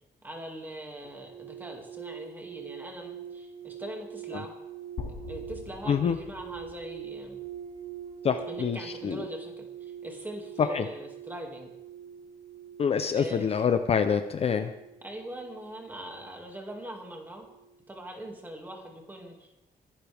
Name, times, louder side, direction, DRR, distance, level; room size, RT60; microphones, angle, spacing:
voice 1, 0.2-4.5 5.3-7.4 8.5-11.7 13.1-13.6 15.0-17.5 17.9-19.6, right 1 dB, 10° right, 1 dB, 2.3 m, -42 dB
sound 1, 1.0-18.4 18.6-19.0, right 9 dB, 40° right, 3.2 m, -44 dB
sound 2, 5.0-8.9, left 5 dB, 70° left, 2.5 m, -45 dB
voice 2, 8.2-9.2 10.6-10.8 12.8-14.7, left 7 dB, 40° left, 8 dB, 0.6 m, -26 dB
23.0 x 12.0 x 3.5 m, 0.89 s
wide cardioid pair, 175°, 17 cm